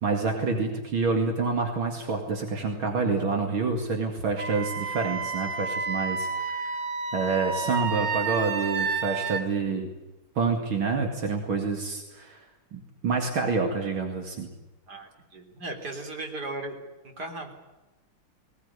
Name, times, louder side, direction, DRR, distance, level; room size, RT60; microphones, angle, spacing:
voice 1, 0.0-6.7 7.1-9.9 10.4-12.4 12.7-14.5, right 4 dB, 75° right, 3 dB, 3.1 m, -27 dB
Wind instrument woodwind instrument, 4.4-9.4, right 5 dB, 90° right, 2.4 m, -30 dB
voice 2, 14.9-16.8 17.0-17.5, right 2 dB, 50° right, 3 dB, 3.9 m, -37 dB
20.0 x 20.0 x 9.8 m, 1.1 s
omnidirectional pair, 2.2 m